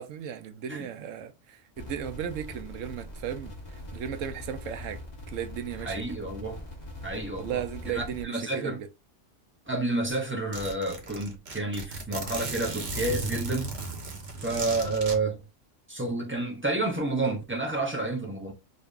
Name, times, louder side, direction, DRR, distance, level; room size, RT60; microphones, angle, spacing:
voice 1, 0.0-5.0 5.3-6.2 7.4-8.9, right 9 dB, 75° right, 1.0 m, -36 dB
sound 1, 1.7-8.2, left 1 dB, 35° left, 1.3 m, -42 dB
voice 2, 5.8-6.6 7.0-7.6 7.9-8.8 9.7-13.7 14.4-15.4 15.9-18.5, right 2 dB, 15° right, 0.6 m, -30 dB
Zipper (clothing), 10.5-15.2, right 3 dB, 55° right, 1.2 m, -35 dB
5.1 x 2.6 x 2.4 m
omnidirectional pair, 1.3 m